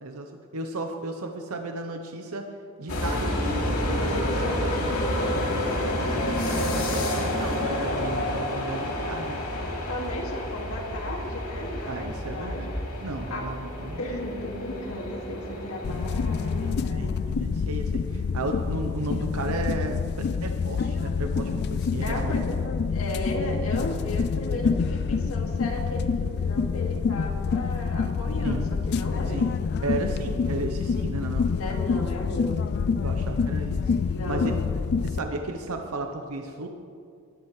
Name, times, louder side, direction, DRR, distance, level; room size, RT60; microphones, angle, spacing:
voice 1, 0.0-2.5 2.8-3.4 6.2-9.4 11.9-12.7 13.0-14.0 16.6-20.0 20.4-22.4 28.4-28.7 29.3-29.5 29.8-31.5 33.0-33.9 34.3-34.5 35.0-36.7, right 2 dB, 80° right, 4 dB, 0.8 m, -34 dB
sound 1, 2.9-16.7, left 1 dB, 85° left, 2.8 m, -29 dB
voice 2, 3.8-5.6 9.9-12.8 13.3-13.5 14.0-17.5 22.0-29.4 31.5-32.9 34.1-34.6, left 1 dB, 70° left, 1 dB, 2.1 m, -35 dB
sound 2, 15.8-35.2, left 5 dB, 50° left, 0.3 m, -27 dB
21.5 x 12.0 x 3.2 m, 2.4 s
head